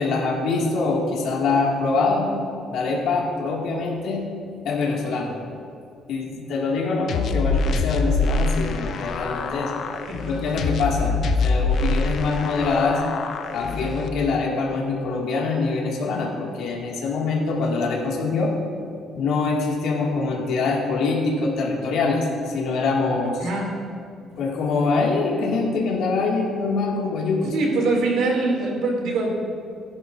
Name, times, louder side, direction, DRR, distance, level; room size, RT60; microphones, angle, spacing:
voice 1, 0.0-2.3 2.7-4.2 4.6-5.4 6.1-9.7 10.3-13.0 13.5-18.5 19.1-23.5 24.4-27.5, left 3 dB, 75° left, -2 dB, 2.0 m, -24 dB
sound 1, 7.1-14.1, left 3 dB, 55° left, 0.7 m, -25 dB
voice 2, 23.4-23.7 27.5-29.3, right 3 dB, 85° right, -1 dB, 2.5 m, -23 dB
16.0 x 10.5 x 2.6 m, 2.4 s
cardioid pair, 130°, 0 cm